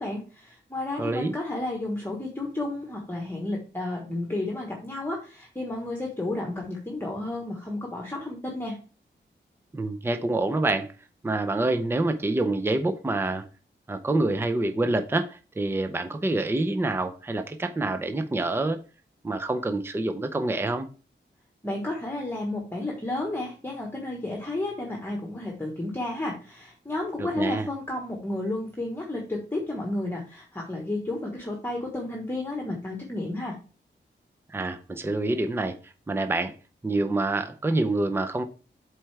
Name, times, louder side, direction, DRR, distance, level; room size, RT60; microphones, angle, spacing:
voice 1, 0.0-8.8 21.6-33.6, left 2 dB, 10° left, 0 dB, 1.2 m, -32 dB
voice 2, 1.0-1.3 9.7-10.9 11.2-13.4 13.9-18.8 19.2-20.9 27.2-27.7 34.5-36.5 36.8-38.4, right 2 dB, 10° right, 8 dB, 0.5 m, -27 dB
7.7 x 4.6 x 3.3 m, 0.36 s
wide cardioid pair, 145°, 19 cm